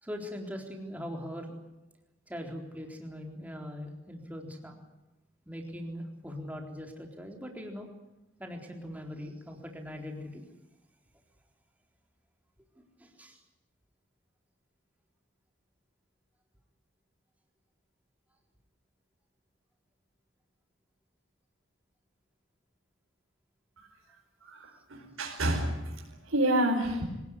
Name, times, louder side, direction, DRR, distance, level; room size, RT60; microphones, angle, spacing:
voice 1, 0.0-1.6 2.3-4.8 5.5-7.9 8.4-10.4 13.0-13.4, equal, 5° right, 2 dB, 3.9 m, -41 dB
voice 2, 24.4-27.0, right 1 dB, 80° right, -2 dB, 5.0 m, -29 dB
26.0 x 18.0 x 10.0 m, 0.99 s
head